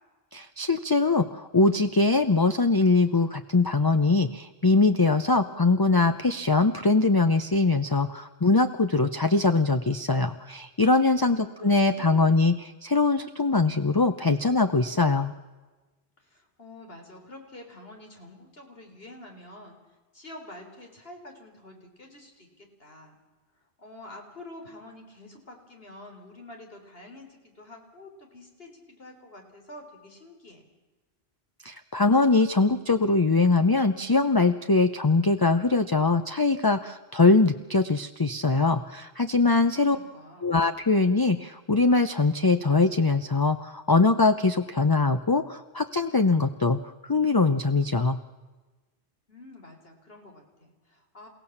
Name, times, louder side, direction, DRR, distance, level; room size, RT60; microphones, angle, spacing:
voice 1, 0.3-15.3 31.6-40.0 40.4-48.2, left 3 dB, 25° left, 9 dB, 0.7 m, -22 dB
voice 2, 11.1-12.6 16.2-19.8 20.1-23.2 23.8-30.7 39.8-40.6 49.3-51.3, left 1 dB, 65° left, 2 dB, 4.1 m, -47 dB
29.5 x 16.5 x 7.2 m, 1.2 s
omnidirectional pair, 1.1 m